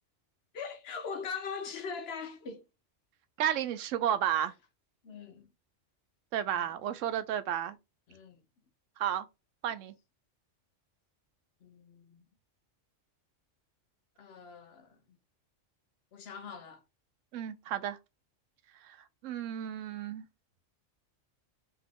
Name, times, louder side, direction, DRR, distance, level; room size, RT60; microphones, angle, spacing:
voice 1, 0.5-2.7 5.0-5.5 6.4-6.7 8.1-8.4 11.6-12.3 14.2-15.2 16.1-16.8, left 5 dB, 60° left, 0.8 m, -42 dB
voice 2, 3.4-4.5 6.3-7.8 9.0-9.3 9.6-9.9 17.3-18.0 18.8-19.0 19.2-20.2, right 10 dB, 85° right, 0.9 m, -32 dB
3.8 x 2.9 x 3.6 m
omnidirectional pair, 1.3 m